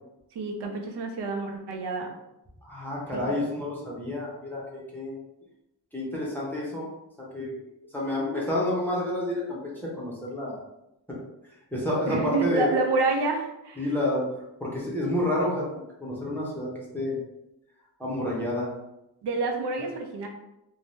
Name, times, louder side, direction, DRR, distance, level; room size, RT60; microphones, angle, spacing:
voice 1, 0.3-2.1 3.1-3.3 12.1-13.8 19.2-20.3, right 3 dB, 90° right, 2 dB, 0.6 m, -28 dB
voice 2, 2.6-5.2 5.9-6.9 7.2-7.5 7.9-9.6 9.9-10.6 11.1-11.2 11.7-12.8 13.8-14.3 14.6-17.2 18.0-18.7, left 1 dB, 5° left, -5 dB, 0.6 m, -29 dB
2.6 x 2.1 x 3.2 m, 0.90 s
wide cardioid pair, 165°, 40 cm